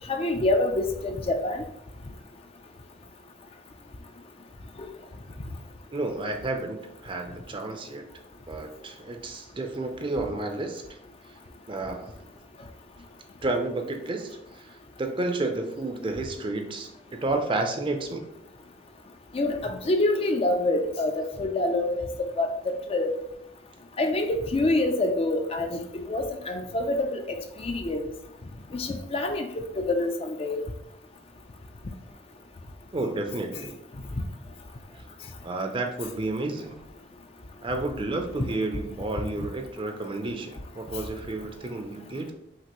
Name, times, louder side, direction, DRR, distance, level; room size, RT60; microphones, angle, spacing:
voice 1, 0.1-1.6 19.3-22.1 22.4-23.2 24.0-28.0 28.7-30.6, left 2 dB, 35° left, 5 dB, 0.4 m, -26 dB
voice 2, 5.9-8.1 8.5-10.8 11.7-12.1 13.4-18.2 32.9-33.8 34.9-35.0 35.4-36.9 37.6-42.3, right 2 dB, 30° right, 5 dB, 0.5 m, -31 dB
5.8 x 2.6 x 3.0 m, 0.78 s
head